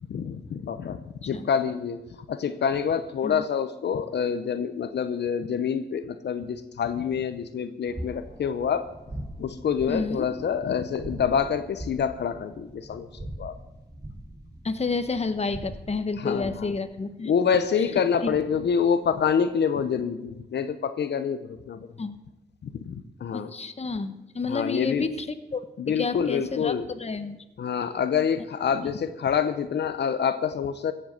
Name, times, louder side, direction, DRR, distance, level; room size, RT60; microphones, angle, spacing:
voice 1, 0.0-2.0 2.3-8.9 9.4-13.1 13.4-13.6 16.2-16.7 17.2-21.9 22.6-23.5 24.5-25.0 25.8-26.9 27.6-30.9, left 7 dB, 85° left, 10 dB, 0.8 m, -27 dB
sound 1, 7.8-16.7, right 1 dB, 20° right, 4.0 m, -41 dB
voice 2, 9.9-10.2 14.6-17.3 18.2-18.3 22.0-22.1 23.3-27.4, left 4 dB, 40° left, 10 dB, 1.2 m, -30 dB
15.5 x 7.8 x 7.9 m, 0.93 s
cardioid pair, 75°, 17 cm